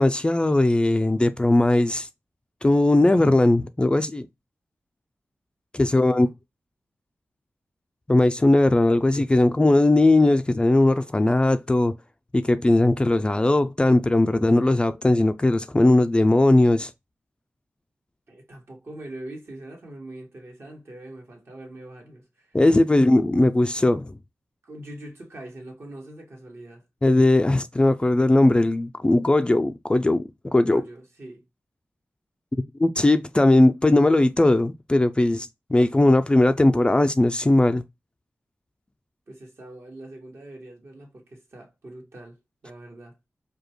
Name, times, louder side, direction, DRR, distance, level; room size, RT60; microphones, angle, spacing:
voice 1, 0.0-2.1 2.6-4.3 5.7-6.3 8.1-11.9 12.3-16.9 22.5-24.1 27.0-30.2 30.5-30.8 32.8-37.8, left 2 dB, 20° left, 0.4 m, -19 dB
voice 2, 5.8-6.3 18.3-22.6 22.9-23.2 24.6-26.8 30.6-31.4 39.3-42.4 42.6-43.2, right 1 dB, 60° right, 1.6 m, -42 dB
4.8 x 2.3 x 3.0 m
wide cardioid pair, 70°, 5 cm